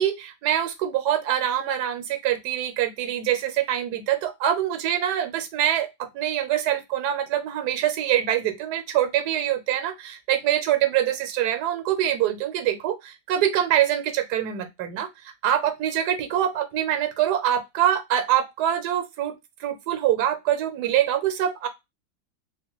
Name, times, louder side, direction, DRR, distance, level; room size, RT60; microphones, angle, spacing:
voice 1, 0.0-12.9 13.3-19.3 19.6-21.7, right 11 dB, 75° right, 7 dB, 1.2 m, -24 dB
3.4 x 2.2 x 2.9 m, 0.21 s
omnidirectional pair, 1.7 m